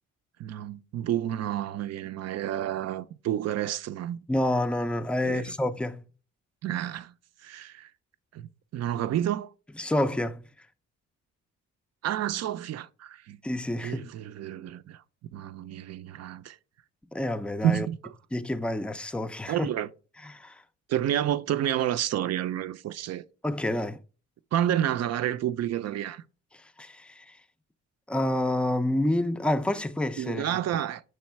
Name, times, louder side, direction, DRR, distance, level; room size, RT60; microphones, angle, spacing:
voice 1, 0.4-4.3 5.2-5.5 6.6-7.1 7.4-7.9 8.3-8.5 8.7-9.5 12.0-13.4 13.8-15.0 15.3-16.6 17.6-18.1 19.5-19.9 20.9-23.2 24.5-26.2 30.2-31.0, right 11 dB, 55° right, 0.5 m, -30 dB
voice 2, 4.3-6.0 9.8-10.4 13.4-14.1 17.1-17.9 18.3-19.7 20.2-20.6 23.4-24.0 26.8-27.4 28.1-30.6, left 1 dB, 5° left, 0.4 m, -28 dB
6.5 x 3.2 x 4.5 m
cardioid pair, 90°, 30 cm